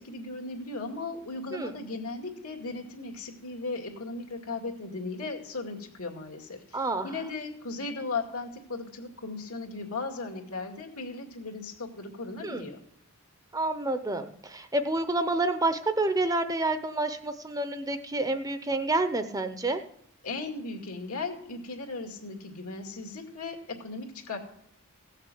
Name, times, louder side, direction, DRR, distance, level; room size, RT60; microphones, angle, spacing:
voice 1, 0.0-12.8 20.2-24.4, left 3 dB, 80° left, 3 dB, 2.2 m, -37 dB
voice 2, 6.7-7.1 12.4-12.6 13.5-19.8, right 2 dB, 15° right, 9 dB, 0.7 m, -28 dB
16.5 x 6.5 x 7.8 m, 0.71 s
head